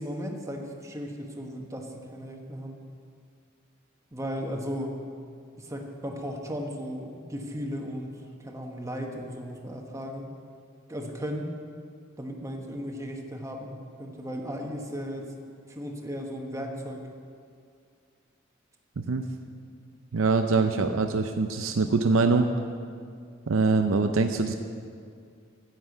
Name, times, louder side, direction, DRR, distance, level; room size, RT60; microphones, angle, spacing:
voice 1, 0.0-2.8 4.1-5.0 5.6-10.3 10.9-11.5 12.2-15.3 15.7-17.1, equal, 15° right, 1 dB, 1.2 m, -36 dB
voice 2, 20.1-22.5 23.5-24.5, right 3 dB, 80° right, 6 dB, 0.6 m, -23 dB
10.0 x 7.7 x 7.9 m, 2.2 s
head